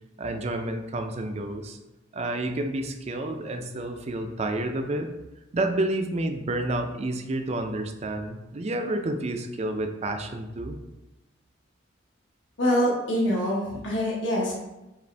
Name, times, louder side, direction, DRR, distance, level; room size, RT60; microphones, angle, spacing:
voice 1, 0.2-1.8 2.1-5.1 5.5-10.8, right 1 dB, 35° right, 5 dB, 0.4 m, -29 dB
voice 2, 12.6-14.5, equal, 65° left, -4 dB, 1.3 m, -25 dB
5.1 x 2.5 x 3.3 m, 1.0 s
head